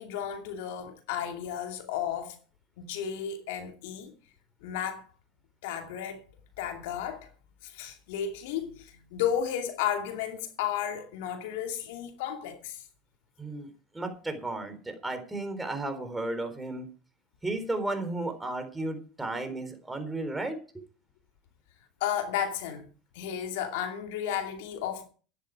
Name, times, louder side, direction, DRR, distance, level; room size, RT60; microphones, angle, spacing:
voice 1, 0.0-2.4 2.8-4.1 4.6-5.0 5.6-6.2 6.6-7.3 7.6-12.8 22.0-22.9 23.1-25.1, left 9 dB, 75° left, 2.5 m, -33 dB
voice 2, 13.4-13.7 13.9-16.9 17.4-20.6, right 2 dB, 10° right, 3.8 m, -34 dB
13.0 x 10.5 x 4.8 m
supercardioid pair, 105°, 0 cm